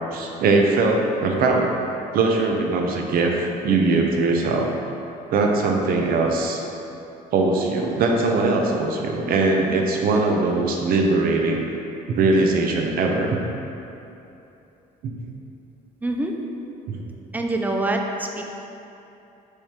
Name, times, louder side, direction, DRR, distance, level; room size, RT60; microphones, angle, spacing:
voice 1, 0.1-1.7 2.1-4.7 5.3-6.6 7.3-11.6 12.1-13.4 15.0-15.1 16.9-17.0, right 3 dB, 60° right, 1 dB, 0.5 m, -21 dB
voice 2, 16.0-16.3 17.3-18.5, right 2 dB, 10° right, 2 dB, 0.3 m, -25 dB
4.6 x 3.4 x 2.8 m, 2.8 s
cardioid pair, 110°, 17 cm